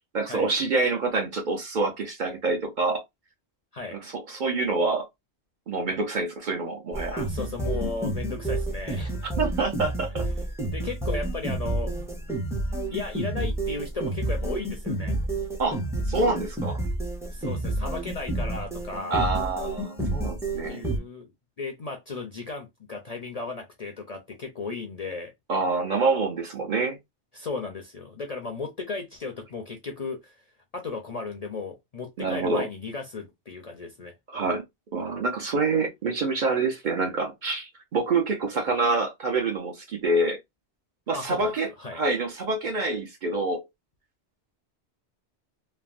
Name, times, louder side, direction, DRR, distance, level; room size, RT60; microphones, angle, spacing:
voice 1, 0.1-3.0 3.9-5.1 5.7-7.1 9.4-10.3 15.6-15.8 16.1-16.8 19.1-20.8 25.5-27.0 32.2-32.7 34.3-34.6 34.9-40.4 41.1-43.6, right 3 dB, 50° right, 0.7 m, -26 dB
sound 1, 6.9-21.0, right 1 dB, 5° right, 0.5 m, -29 dB
voice 2, 7.1-9.1 10.7-11.9 12.9-15.1 17.3-19.2 20.7-25.3 27.3-30.4 30.7-34.1 41.1-42.0, left 4 dB, 45° left, 0.5 m, -35 dB
3.3 x 2.1 x 2.4 m
omnidirectional pair, 1.2 m